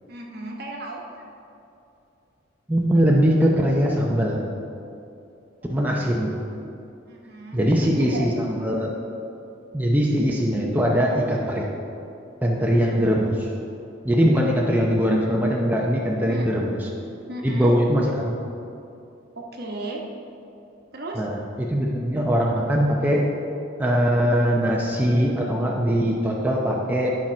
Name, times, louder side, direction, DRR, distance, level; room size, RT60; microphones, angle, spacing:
voice 1, 0.1-1.0 5.6-5.7 7.1-8.4 12.9-13.1 16.3-16.5 17.3-17.7 19.3-20.0 20.9-21.2, right 2 dB, 55° right, 0 dB, 1.1 m, -35 dB
voice 2, 2.7-4.4 5.7-6.3 7.5-8.9 9.7-11.6 12.4-13.3 14.0-16.7 17.4-18.3 21.2-23.2 23.8-27.1, equal, 10° right, -3 dB, 0.7 m, -21 dB
10.5 x 5.9 x 4.3 m, 2.7 s
head